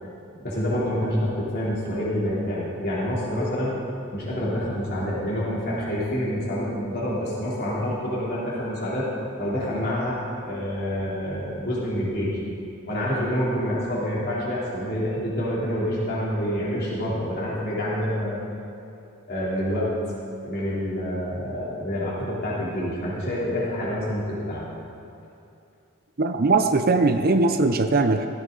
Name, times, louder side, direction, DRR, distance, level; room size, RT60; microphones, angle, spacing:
voice 1, 0.4-3.8 4.1-9.1 9.4-12.4 12.9-18.4 19.3-19.9 20.4-24.7, equal, 50° left, -7 dB, 3.4 m, -27 dB
voice 2, 26.2-28.3, right 3 dB, 45° right, 7 dB, 0.7 m, -20 dB
16.0 x 15.5 x 4.0 m, 2.6 s
head